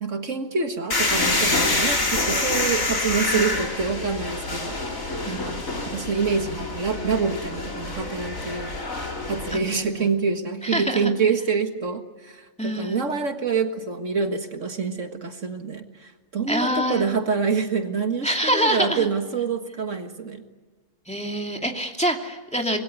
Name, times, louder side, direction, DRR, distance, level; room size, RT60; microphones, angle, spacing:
voice 1, 0.0-4.8 5.3-5.6 5.9-8.7 9.3-20.4, right 5 dB, 65° right, 6 dB, 2.0 m, -26 dB
sound 1, 0.9-9.6, left 2 dB, 80° left, 4.0 m, -26 dB
voice 2, 5.2-5.7 9.5-10.1 10.6-11.1 12.6-13.1 16.5-17.1 18.2-19.1 21.1-22.8, equal, 5° left, 2 dB, 2.6 m, -26 dB
26.0 x 21.5 x 8.2 m, 1.3 s
omnidirectional pair, 1.4 m